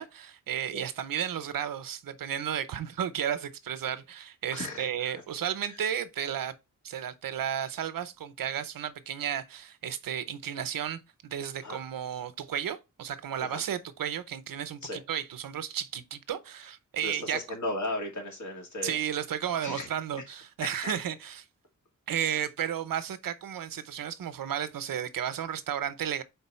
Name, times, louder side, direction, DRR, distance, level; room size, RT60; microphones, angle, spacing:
voice 1, 0.0-6.5 6.8-17.4 18.8-21.3 22.1-26.2, right 9 dB, 85° right, 0.8 m, -33 dB
voice 2, 4.5-5.2 5.6-5.8 11.6-11.8 13.4-13.6 14.8-15.0 17.0-19.0 19.6-19.9 20.6-20.9, left 1 dB, 60° left, 2.4 m, -36 dB
4.6 x 4.0 x 5.6 m
wide cardioid pair, 160°, 33 cm